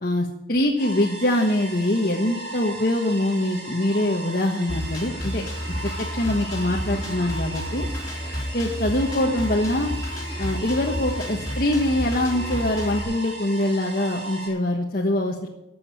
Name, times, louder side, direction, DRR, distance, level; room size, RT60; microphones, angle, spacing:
voice 1, 0.0-5.4 5.8-7.9 8.5-9.9 10.4-15.5, left 1 dB, 50° left, -1 dB, 1.3 m, -24 dB
sound 1, 0.8-14.5, right 1 dB, 75° right, 5.2 m, -37 dB
Drum kit, 4.7-13.0, equal, 20° left, 3.0 m, -31 dB
13.0 x 7.8 x 8.6 m, 0.93 s
head